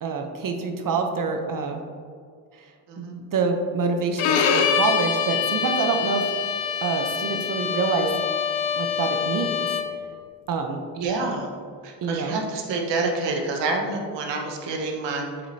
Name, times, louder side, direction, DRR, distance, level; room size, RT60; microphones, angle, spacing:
voice 1, 0.0-1.8 3.0-6.2 6.8-8.1 8.8-9.7 10.5-10.8 12.0-12.4, right 4 dB, 45° right, 4 dB, 0.8 m, -26 dB
Bowed string instrument, 4.2-10.0, left 7 dB, 75° left, 0.8 m, -25 dB
voice 2, 10.9-11.5 11.8-15.3, right 3 dB, 65° right, 2 dB, 1.3 m, -27 dB
7.2 x 5.1 x 2.7 m, 2.1 s
supercardioid pair, 80°, 47 cm